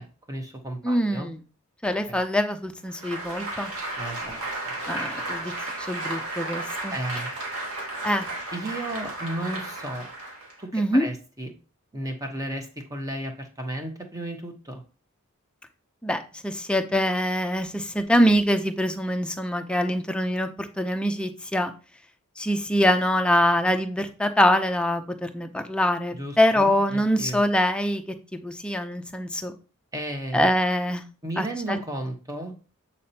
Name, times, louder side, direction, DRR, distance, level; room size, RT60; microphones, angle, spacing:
voice 1, 0.0-1.3 2.1-2.2 4.0-4.7 6.9-7.3 8.5-10.1 10.6-11.5 11.9-14.8 26.2-27.4 29.9-30.5 31.2-32.5, right 1 dB, 15° right, 4 dB, 1.0 m, -34 dB
voice 2, 0.8-1.4 1.8-3.7 4.9-5.5 5.8-6.9 8.0-8.3 10.7-11.1 16.0-21.7 22.4-28.0 28.4-29.5 30.3-31.0 31.4-31.8, equal, 5° left, 6 dB, 0.5 m, -24 dB
Applause, 2.9-10.6, right 2 dB, 85° right, 1.7 m, -33 dB
8.4 x 4.2 x 2.8 m, 0.36 s
head